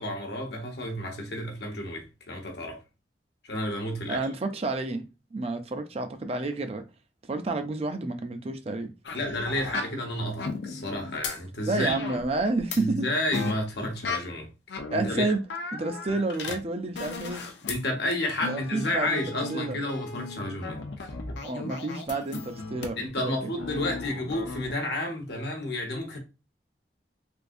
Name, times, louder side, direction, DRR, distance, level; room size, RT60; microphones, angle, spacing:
voice 1, 0.0-2.8 3.4-4.2 9.1-12.0 12.8-14.5 14.9-15.3 17.7-21.1 23.0-26.2, left 1 dB, 70° left, 0.9 m, -31 dB
voice 2, 4.1-5.0 5.3-6.8 7.3-8.9 11.7-13.1 14.9-15.4 15.7-17.4 18.4-19.2 19.5-19.8 21.4-23.3, right 2 dB, 35° right, 0.4 m, -30 dB
sound 1, 9.0-10.0 10.4-11.4 11.9-12.8 13.3-14.2 14.7-17.8 18.1-23.1 23.6-24.7, left 4 dB, 85° left, 0.6 m, -36 dB
3.4 x 2.6 x 2.5 m
head